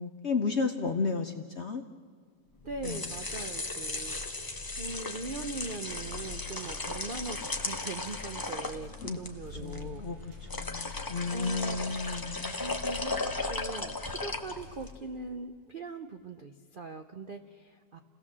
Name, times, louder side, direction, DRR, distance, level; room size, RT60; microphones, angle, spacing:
voice 1, 0.0-1.8 2.8-3.0 9.0-9.2 9.6-10.2 10.5-12.6, left 4 dB, 55° left, 6 dB, 0.7 m, -32 dB
sound 1, 2.6-15.0, left 3 dB, 15° left, 0.7 m, -36 dB
voice 2, 2.6-10.0 11.3-11.8 12.6-18.0, right 3 dB, 70° right, 6 dB, 0.5 m, -41 dB
sound 2, 5.8-14.9, left 4 dB, 35° right, 2.1 m, -49 dB
29.0 x 17.0 x 7.4 m, 2.1 s
omnidirectional pair, 2.1 m